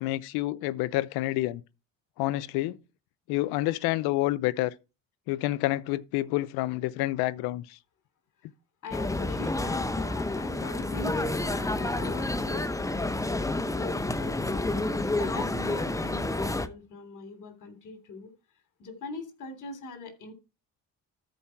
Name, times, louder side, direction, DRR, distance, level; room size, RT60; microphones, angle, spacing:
voice 1, 0.0-1.6 2.2-2.8 3.3-4.7 5.3-7.8, left 17 dB, 85° left, 0.6 m, -28 dB
voice 2, 8.8-12.7 13.7-14.7 15.2-18.3 18.8-20.3, left 3 dB, 55° left, 3.0 m, -42 dB
sound 1, 8.9-16.7, left 2 dB, 10° left, 0.8 m, -29 dB
13.5 x 4.6 x 4.6 m
supercardioid pair, 80°, 37 cm